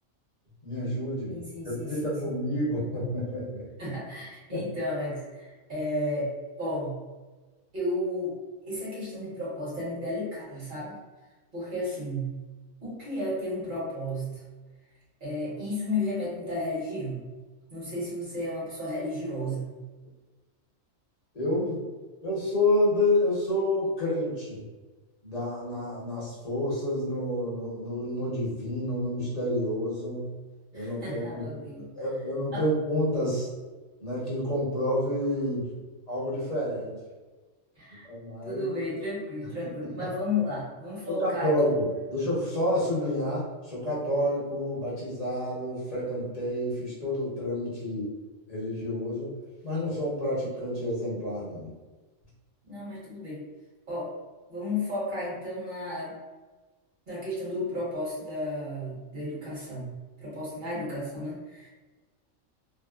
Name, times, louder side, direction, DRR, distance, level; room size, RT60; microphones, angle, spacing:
voice 1, 0.6-1.4 1.6-3.7 4.5-4.6 21.3-21.8 22.2-24.7 25.2-30.3 30.7-31.6 31.9-33.5 34.0-35.7 36.1-37.0 38.0-38.7 40.0-40.1 41.1-48.1 48.5-49.3 49.6-51.7, left 1 dB, 35° left, -8 dB, 0.9 m, -29 dB
voice 2, 1.2-2.2 3.8-7.0 7.7-8.3 8.6-11.0 11.5-12.3 12.8-14.4 15.2-17.2 17.7-19.6 30.7-31.9 32.5-32.6 37.8-38.1 38.4-41.5 52.6-53.4 53.9-54.1 54.5-56.2 57.1-59.9 60.2-61.7, left 1 dB, 40° right, -8 dB, 1.3 m, -33 dB
3.5 x 2.0 x 2.4 m, 1.3 s
omnidirectional pair, 1.4 m